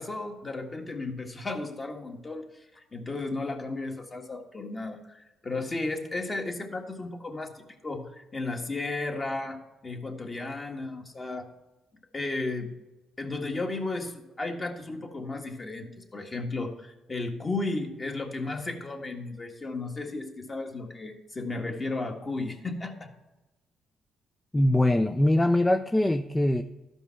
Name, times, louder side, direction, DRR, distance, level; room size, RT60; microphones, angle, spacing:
voice 1, 0.0-11.5 12.1-12.7 13.2-23.1, left 2 dB, 30° left, 3 dB, 1.6 m, -34 dB
voice 2, 24.5-26.6, left 1 dB, 10° left, 8 dB, 0.5 m, -22 dB
13.5 x 5.4 x 5.7 m, 1.1 s
cardioid pair, 90°, 0 cm